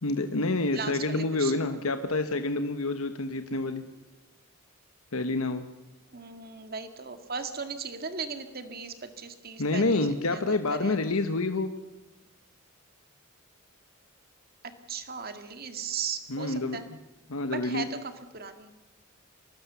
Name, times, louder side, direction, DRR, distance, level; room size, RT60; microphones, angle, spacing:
voice 1, 0.0-3.8 5.1-5.6 9.6-11.7 16.3-16.8 17.3-17.9, left 2 dB, 90° left, 8 dB, 1.2 m, -28 dB
voice 2, 0.7-1.8 6.1-11.2 14.9-16.9 17.5-18.7, right 5 dB, 45° right, 8 dB, 2.1 m, -37 dB
24.5 x 18.5 x 7.0 m, 1.0 s
head